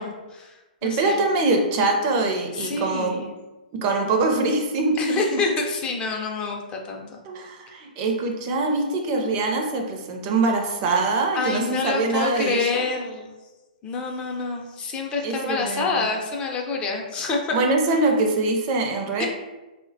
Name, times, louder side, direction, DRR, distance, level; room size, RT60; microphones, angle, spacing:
voice 1, 0.0-1.2 2.5-3.3 5.0-7.2 11.3-13.3 13.8-17.6 19.2-19.3, left 3 dB, 20° left, 0 dB, 0.4 m, -27 dB
voice 2, 0.8-3.2 3.8-5.2 7.3-12.8 15.2-16.1 17.5-19.3, right 3 dB, 35° right, 2 dB, 0.5 m, -23 dB
3.3 x 2.1 x 2.6 m, 1.1 s
hypercardioid pair, 130°, 5 cm